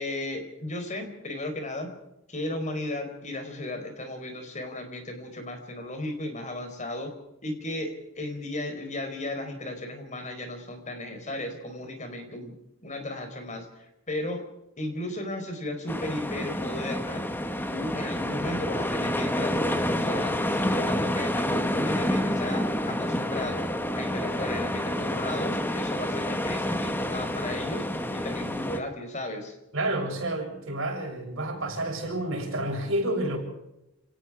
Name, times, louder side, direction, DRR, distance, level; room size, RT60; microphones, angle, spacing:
voice 1, 0.0-1.9 2.3-7.1 7.4-12.6 12.8-14.4 14.8-17.3 17.7-23.7 24.0-27.8 28.1-29.6, left 1 dB, 35° left, 7 dB, 4.4 m, -35 dB
sound 1, 15.9-28.8, left 1 dB, 10° left, 1.6 m, -28 dB
voice 2, 29.7-33.4, right 1 dB, 65° right, 1 dB, 7.4 m, -29 dB
29.0 x 18.5 x 4.9 m, 0.89 s
head